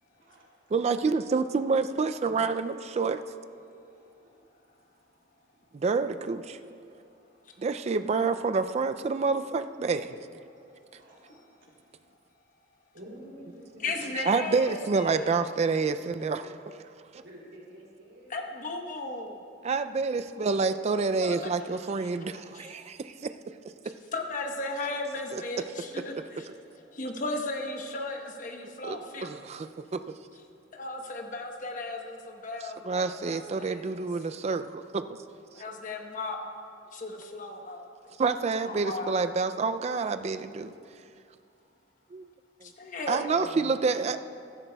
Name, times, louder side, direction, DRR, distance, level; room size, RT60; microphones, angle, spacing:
voice 1, 0.1-0.5 2.7-3.0 3.9-4.3 10.9-11.7 12.9-14.7 17.2-18.6 20.0-20.7 25.7-26.7 43.5-44.2, right 1 dB, 75° right, -3 dB, 2.9 m, -51 dB
voice 2, 0.7-3.2 5.7-6.6 7.6-10.3 14.1-16.8 17.1-17.2 19.6-23.1 25.3-25.4 28.8-30.0 32.8-35.1 38.2-40.7 42.1-42.3 42.6-42.7 43.1-44.2, right 4 dB, 35° right, 10 dB, 0.3 m, -28 dB
voice 3, 13.8-15.3 18.3-19.4 21.2-21.5 22.0-22.1 22.5-22.7 24.1-26.5 26.9-29.3 30.7-34.0 35.5-36.4 36.9-37.8 38.6-39.2 42.6-43.7, left 2 dB, 45° left, 3 dB, 1.0 m, -36 dB
16.0 x 13.0 x 2.3 m, 2.4 s
head